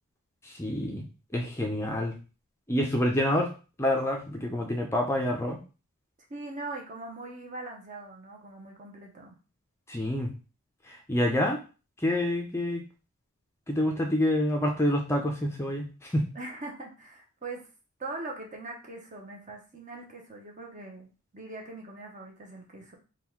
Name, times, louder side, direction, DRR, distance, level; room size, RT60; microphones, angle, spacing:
voice 1, 0.4-1.0 1.3-2.1 2.7-3.5 3.8-5.6 9.9-10.3 10.9-11.6 12.0-12.8 13.7-16.3, left 1 dB, 10° left, 1 dB, 0.5 m, -27 dB
voice 2, 6.3-9.4 16.3-17.7 18.0-23.0, right 2 dB, 35° right, 1 dB, 0.9 m, -41 dB
3.7 x 2.4 x 4.5 m, 0.34 s
head